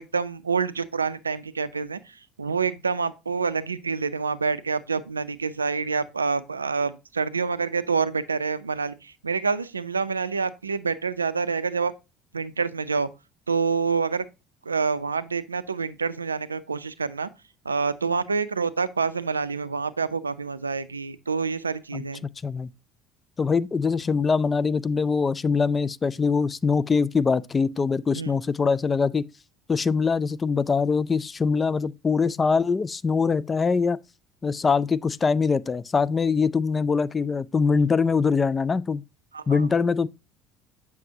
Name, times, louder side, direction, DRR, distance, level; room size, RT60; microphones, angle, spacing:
voice 1, 0.0-2.0 2.4-8.9 9.2-11.9 12.3-13.1 13.5-14.3 14.7-17.3 17.7-22.2 28.1-28.3 39.3-39.6, right 5 dB, 85° right, 0.4 m, -27 dB
voice 2, 23.4-29.3 29.7-34.0 34.4-39.0 39.5-40.1, left 5 dB, 25° left, 0.4 m, -23 dB
7.5 x 5.9 x 2.7 m
figure-of-eight pair, 60°, 0 cm